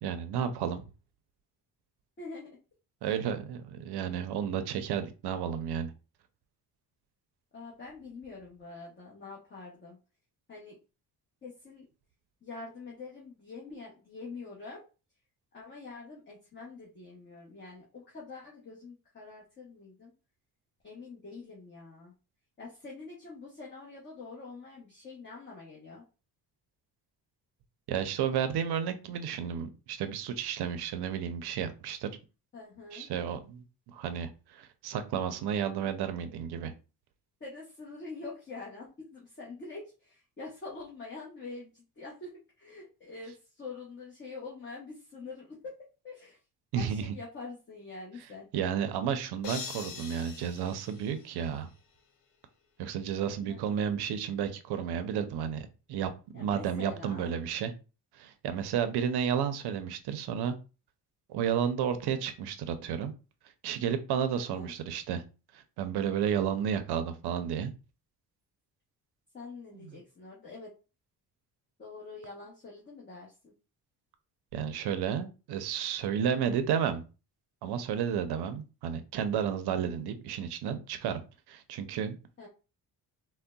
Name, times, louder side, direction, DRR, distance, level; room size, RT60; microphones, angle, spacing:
voice 1, 0.0-0.9 3.0-5.9 27.9-32.1 32.9-36.7 46.7-47.0 48.5-51.7 52.8-57.7 58.1-60.6 61.3-63.1 63.6-65.2 65.5-67.7 69.8-69.9 74.5-77.0 77.6-82.2, right 8 dB, 75° right, 0.6 m, -32 dB
voice 2, 2.2-2.6 7.5-10.0 10.5-10.8 11.4-11.8 12.4-14.8 15.5-20.1 20.8-22.1 22.6-26.0 32.5-33.1 37.4-46.4 46.8-48.5 53.2-53.6 56.3-57.3 64.3-64.7 69.3-70.7 71.8-73.5 82.4-82.5, left 3 dB, 30° left, 0.9 m, -45 dB
sound 1, 49.4-51.8, left 6 dB, 85° left, 0.6 m, -43 dB
3.7 x 2.1 x 2.2 m
cardioid pair, 90°, 40 cm